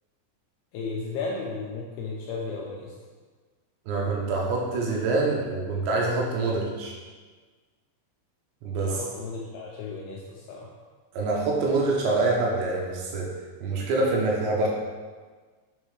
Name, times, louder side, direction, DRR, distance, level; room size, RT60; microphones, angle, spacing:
voice 1, 0.7-2.9 8.9-10.7, left 4 dB, 80° left, -2 dB, 2.3 m, -34 dB
voice 2, 3.9-6.9 8.6-9.0 11.1-13.3 13.6-14.7, right 3 dB, 75° right, -2 dB, 3.0 m, -25 dB
7.5 x 4.1 x 4.8 m, 1.4 s
omnidirectional pair, 5.4 m